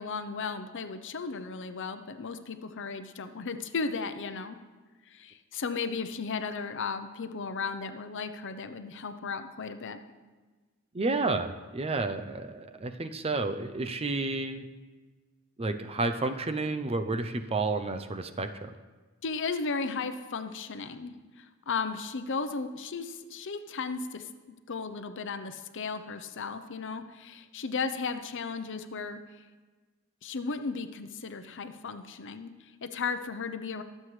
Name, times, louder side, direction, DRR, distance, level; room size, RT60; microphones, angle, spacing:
voice 1, 0.0-4.6 5.1-10.0 19.2-24.3 24.7-29.4 30.2-33.8, left 4 dB, 60° left, 9 dB, 0.7 m, -35 dB
voice 2, 10.9-14.7 15.6-18.7, right 3 dB, 30° right, 8 dB, 0.6 m, -31 dB
22.0 x 7.6 x 3.3 m, 1.3 s
head